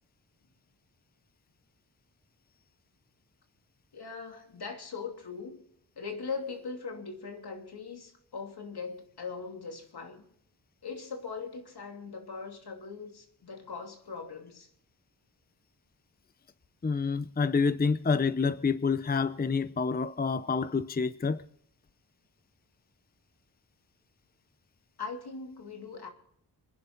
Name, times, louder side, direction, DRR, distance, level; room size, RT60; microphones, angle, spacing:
voice 1, 3.9-5.6 6.0-10.3 10.8-14.7 25.0-26.1, left 5 dB, 70° left, 2.8 m, -40 dB
voice 2, 16.8-21.4, left 5 dB, 25° left, 0.6 m, -28 dB
26.0 x 10.5 x 3.9 m
cardioid pair, 70°, 41 cm